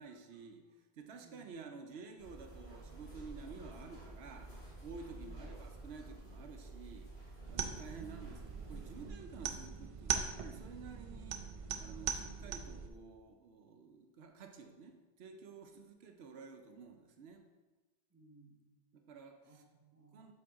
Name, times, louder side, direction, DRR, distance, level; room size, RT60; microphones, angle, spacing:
voice 1, 0.0-4.5 4.8-11.5 11.8-17.4 18.9-19.6 20.1-20.3, right 4 dB, 85° right, 5 dB, 0.9 m, -52 dB
voice 2, 1.2-1.5 5.1-5.5 16.1-16.2 18.1-18.7 19.4-20.3, right 2 dB, 20° right, -1 dB, 1.0 m, -62 dB
sound 1, 2.2-9.1, right 2 dB, 90° left, 2.2 m, -51 dB
sound 2, 7.5-12.9, right 6 dB, 50° right, 0.4 m, -41 dB
7.6 x 4.5 x 3.6 m, 1.2 s
omnidirectional pair, 1.1 m